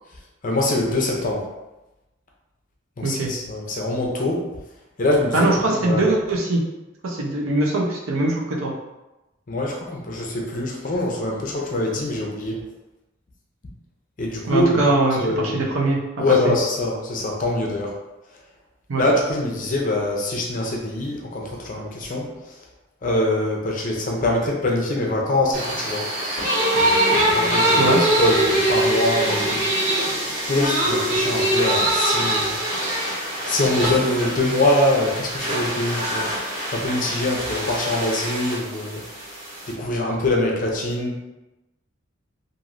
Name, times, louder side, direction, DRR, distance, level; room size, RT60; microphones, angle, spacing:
voice 1, 0.4-1.5 3.0-4.4 5.0-6.1 9.5-12.6 14.2-14.8 15.2-15.7 16.2-17.9 19.0-22.3 23.0-26.1 27.3-27.9 28.2-29.6 30.5-32.6 33.5-36.3 36.7-39.0 39.7-41.2, left 1 dB, 40° left, -1 dB, 0.5 m, -23 dB
voice 2, 3.0-3.3 5.3-6.6 7.0-8.7 14.5-16.0 16.4-16.5 18.9-19.0 27.8-28.0, right 2 dB, 85° right, -2 dB, 0.6 m, -21 dB
sound 1, 25.5-39.7, right 1 dB, 50° right, 1.3 m, -23 dB
3.1 x 2.6 x 2.5 m, 1.0 s
head